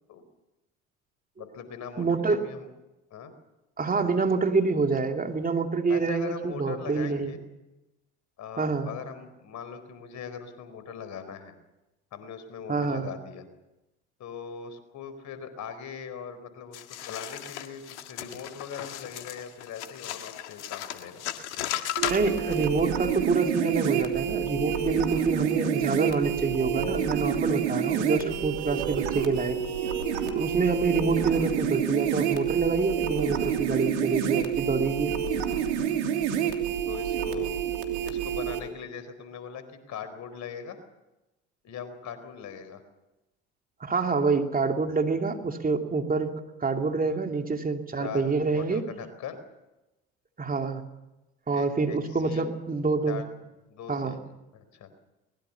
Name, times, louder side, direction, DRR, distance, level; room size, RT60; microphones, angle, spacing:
voice 1, 1.4-2.7 3.1-3.3 5.9-7.4 8.4-11.5 12.1-13.4 14.2-21.2 36.9-37.5 38.0-40.8 41.6-42.8 47.1-47.2 48.0-49.4 51.5-52.4 53.1-53.3 53.7-54.2 54.5-54.9, left 7 dB, 55° left, 11 dB, 4.4 m, -40 dB
voice 2, 2.0-2.4 3.8-7.3 8.6-8.9 12.7-13.1 22.1-29.6 30.3-35.1 43.8-46.3 46.6-48.9 50.4-50.8 51.5-53.2 53.9-54.2, right 4 dB, 25° right, 4 dB, 2.9 m, -27 dB
sound 1, 16.7-22.7, left 12 dB, 80° left, 1.8 m, -36 dB
sound 2, 22.0-38.6, right 8 dB, 75° right, 3.2 m, -28 dB
23.0 x 21.5 x 7.2 m, 0.97 s
hypercardioid pair, 65°, 35 cm